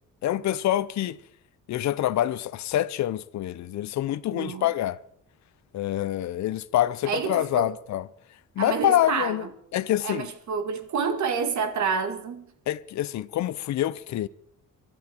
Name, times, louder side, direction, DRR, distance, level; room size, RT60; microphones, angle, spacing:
voice 1, 0.2-1.2 1.7-5.0 5.7-8.0 8.6-9.4 9.7-10.3 12.7-14.3, left 13 dB, 60° left, 0.6 m, -26 dB
voice 2, 4.3-4.7 7.1-7.7 8.6-9.5 10.0-12.5, right 6 dB, 60° right, 2.1 m, -28 dB
24.5 x 11.5 x 4.5 m
cardioid pair, 165°, 33 cm